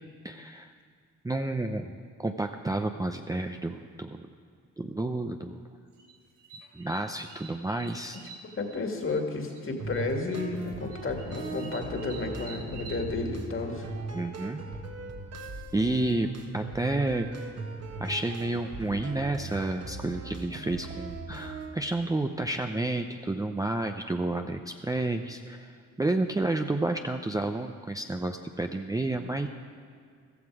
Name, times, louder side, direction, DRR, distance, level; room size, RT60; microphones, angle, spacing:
voice 1, 0.2-0.7 1.2-4.2 4.8-5.6 6.7-8.2 14.1-14.6 15.7-17.3 18.0-29.5, right 2 dB, 10° right, 5 dB, 0.6 m, -30 dB
sound 1, 5.9-9.2 9.5-10.0 10.3-13.0, right 5 dB, 85° right, 3.0 m, -48 dB
voice 2, 8.6-13.9, left 3 dB, 40° left, 3 dB, 2.2 m, -32 dB
sound 2, 9.8-21.8, right 3 dB, 50° right, 1.6 m, -39 dB
15.0 x 13.5 x 4.8 m, 2.2 s
cardioid pair, 75°, 33 cm